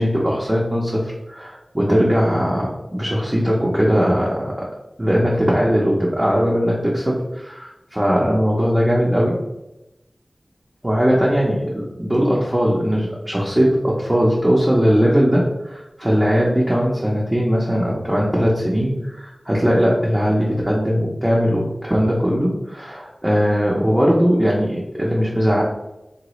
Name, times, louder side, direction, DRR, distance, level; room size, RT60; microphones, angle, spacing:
voice 1, 0.0-4.5 5.0-9.4 10.8-25.6, equal, 20° right, -5 dB, 0.6 m, -19 dB
3.8 x 2.1 x 3.0 m, 0.96 s
wide cardioid pair, 55°, 0 cm